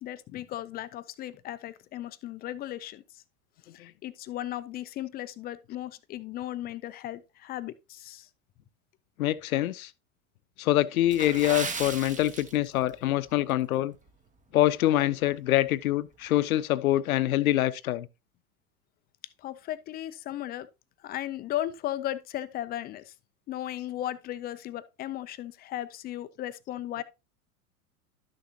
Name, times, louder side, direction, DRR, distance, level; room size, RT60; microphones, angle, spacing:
voice 1, 0.0-3.2 3.7-8.3 19.4-20.7 21.0-23.1 23.5-27.0, left 13 dB, 25° left, 0.4 m, -36 dB
voice 2, 9.2-9.9 10.6-13.9 14.5-18.1, left 14 dB, 75° left, 0.7 m, -25 dB
Water / Splash splatter, 11.1-13.0 13.3-13.5 14.1-14.3 14.8-14.9, right 4 dB, 15° right, 1.0 m, -36 dB
12.0 x 6.5 x 2.8 m
hypercardioid pair, 100°, 43 cm